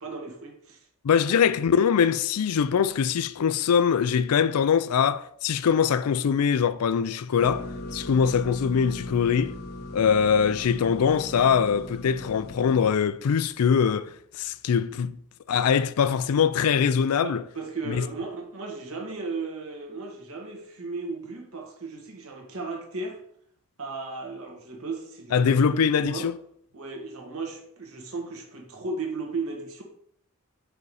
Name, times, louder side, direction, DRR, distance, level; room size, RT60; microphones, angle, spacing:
voice 1, 0.0-0.9 17.2-23.2 23.8-26.3 26.7-29.8, right 3 dB, 65° right, 1.5 m, -35 dB
voice 2, 1.0-9.6 9.9-15.2 15.5-17.4 17.9-18.0 25.3-26.3, left 7 dB, 75° left, 0.4 m, -23 dB
sound 1, 7.4-12.9, left 1 dB, 45° left, 1.0 m, -38 dB
5.3 x 5.0 x 4.8 m
head